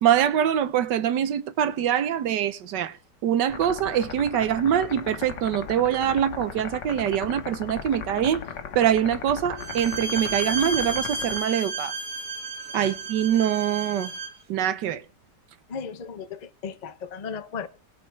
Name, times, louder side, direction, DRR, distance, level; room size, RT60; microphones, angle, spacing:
voice 1, 0.0-2.9 3.2-8.4 8.7-11.9 12.7-14.1 14.5-15.0, right 10 dB, 80° right, 1.5 m, -24 dB
sound 1, 3.5-11.4, left 7 dB, 85° left, 1.8 m, -37 dB
Bowed string instrument, 9.6-14.4, right 3 dB, 45° right, 1.7 m, -32 dB
voice 2, 15.7-17.7, left 6 dB, 50° left, 0.5 m, -36 dB
19.0 x 6.5 x 4.6 m
omnidirectional pair, 1.9 m